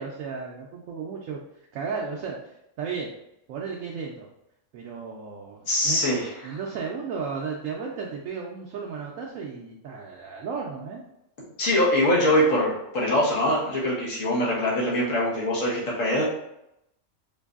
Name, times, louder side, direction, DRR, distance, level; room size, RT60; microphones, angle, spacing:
voice 1, 0.0-1.4 1.7-3.1 3.5-4.3 4.7-6.0 6.4-11.0, right 5 dB, 85° right, -1 dB, 1.0 m, -34 dB
voice 2, 5.7-6.6 11.6-16.2, left 1 dB, 75° left, -6 dB, 1.5 m, -23 dB
4.6 x 2.6 x 2.4 m, 0.83 s
omnidirectional pair, 1.4 m